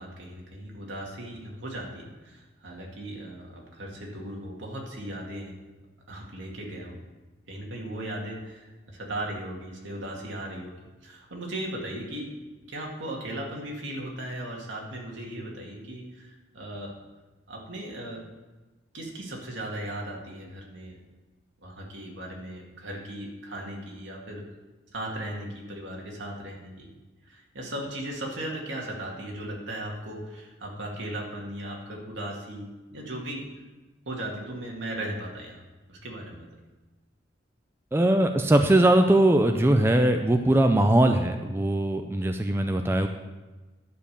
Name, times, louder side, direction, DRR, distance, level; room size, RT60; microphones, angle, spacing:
voice 1, 0.0-5.5 6.1-7.0 7.5-10.8 11.0-12.3 12.7-17.0 17.5-18.2 18.9-21.0 21.6-24.4 24.9-26.9 27.2-33.5 34.1-35.6 35.9-36.4, right 1 dB, 75° right, -1 dB, 2.2 m, -37 dB
voice 2, 37.9-43.1, right 1 dB, 10° right, 5 dB, 0.4 m, -21 dB
11.0 x 5.1 x 6.7 m, 1.2 s
head